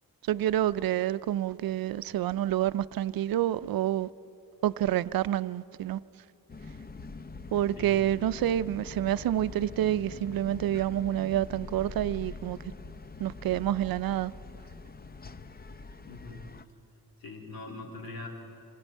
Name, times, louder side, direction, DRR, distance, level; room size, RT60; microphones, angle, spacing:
voice 1, 0.3-4.1 4.6-6.0 7.5-12.6 13.2-14.3, right 12 dB, 75° right, 0.5 m, -28 dB
sound 1, 6.5-16.7, left 3 dB, 25° left, 0.7 m, -44 dB
voice 2, 16.0-16.4 17.2-18.3, left 3 dB, 85° left, 3.7 m, -42 dB
27.0 x 25.5 x 4.5 m
cardioid pair, 80°, 35 cm